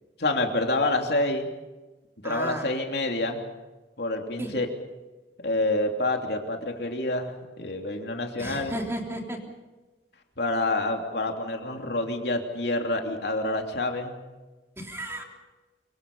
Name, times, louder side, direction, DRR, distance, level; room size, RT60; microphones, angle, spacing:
voice 1, 0.2-1.5 2.2-3.4 4.0-4.7 5.4-8.8 10.4-14.2, left 2 dB, 70° left, 3 dB, 3.1 m, -27 dB
voice 2, 2.2-2.7 4.4-4.5 8.4-9.4 14.8-15.2, right 1 dB, 15° right, 1 dB, 3.4 m, -34 dB
24.5 x 23.5 x 5.5 m, 1.2 s
head